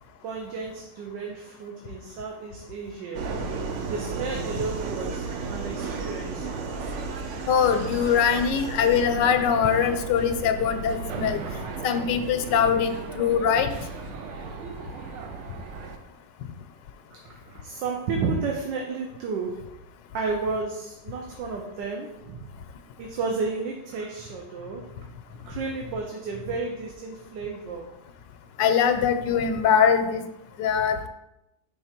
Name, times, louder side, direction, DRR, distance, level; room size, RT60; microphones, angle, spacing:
voice 1, 0.2-3.2 3.9-6.5 11.2-11.5 17.2-19.6 20.1-22.4 23.0-24.8 25.4-27.9, right 4 dB, 85° right, 1 dB, 1.4 m, -32 dB
Subway metro underground, 3.1-16.0, right 4 dB, 65° right, 0.7 m, -34 dB
voice 2, 7.5-11.4 11.8-13.7 28.6-30.2 30.6-31.1, left 7 dB, 90° left, 8 dB, 1.3 m, -22 dB
5.3 x 3.6 x 5.8 m, 0.89 s
omnidirectional pair, 1.9 m